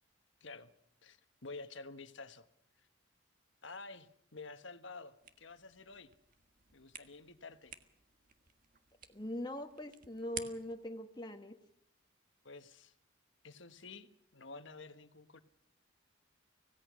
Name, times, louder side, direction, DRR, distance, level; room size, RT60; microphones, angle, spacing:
voice 1, 0.4-0.7 1.0-2.5 3.6-6.1 6.7-7.7 12.4-12.9 13.4-15.4, left 3 dB, 65° left, 10 dB, 1.4 m, -50 dB
sound 1, 5.2-10.9, right 8 dB, 45° right, 1.5 m, -52 dB
voice 2, 9.1-11.5, left 1 dB, 20° left, 4 dB, 1.5 m, -42 dB
25.5 x 17.0 x 6.3 m, 0.76 s
head